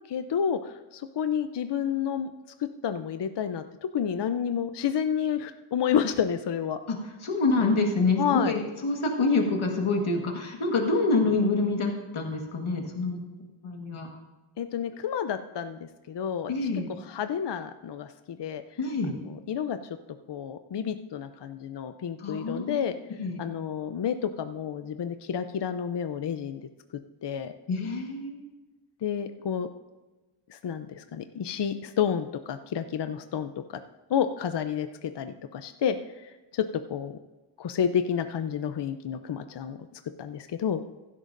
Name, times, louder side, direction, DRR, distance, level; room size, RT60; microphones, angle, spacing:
voice 1, 0.1-2.3 2.6-6.8 8.2-8.6 14.6-15.8 16.1-16.7 17.0-18.6 19.1-19.8 20.3-22.9 23.4-26.7 27.2-27.5 29.0-29.7 30.5-33.8 34.1-36.6 36.9-37.1 37.6-39.8 40.2-40.8, left 8 dB, 55° left, 9 dB, 0.6 m, -30 dB
voice 2, 7.2-13.2 13.6-14.1 16.5-16.9 18.8-19.1 22.2-22.8 23.2-23.4 27.7-28.4, left 3 dB, 75° left, 1 dB, 1.6 m, -26 dB
15.5 x 12.0 x 2.6 m, 1.2 s
wide cardioid pair, 105°, 50 cm